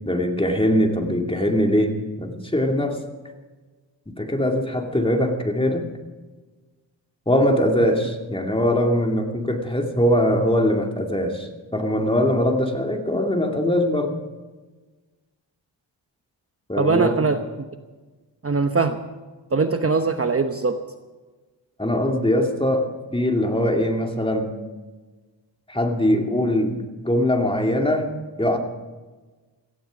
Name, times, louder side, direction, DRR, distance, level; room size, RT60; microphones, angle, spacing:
voice 1, 0.1-1.9 2.2-3.0 4.1-5.9 7.3-14.2 16.7-17.3 21.8-24.5 25.7-26.8 27.0-28.6, left 1 dB, 10° left, 3 dB, 2.5 m, -22 dB
voice 2, 16.8-17.4 18.4-19.0 19.5-20.8, right 4 dB, 30° right, 7 dB, 1.0 m, -21 dB
17.5 x 15.5 x 5.2 m, 1.3 s
cardioid pair, 85°, 44 cm